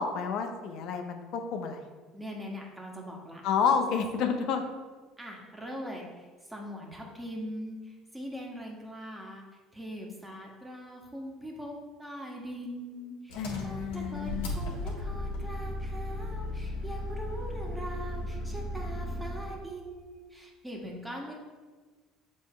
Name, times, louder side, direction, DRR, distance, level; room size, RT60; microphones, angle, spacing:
voice 1, 0.0-1.8 3.4-4.6 13.4-14.5, left 6 dB, 65° left, 5 dB, 0.7 m, -30 dB
voice 2, 2.1-3.4 5.2-9.4 9.7-13.3 13.6-21.3, equal, 10° right, -1 dB, 1.6 m, -41 dB
Engine, 13.3-19.6, left 1 dB, 80° left, 1.6 m, -36 dB
7.2 x 3.2 x 4.4 m, 1.4 s
hypercardioid pair, 75°, 0 cm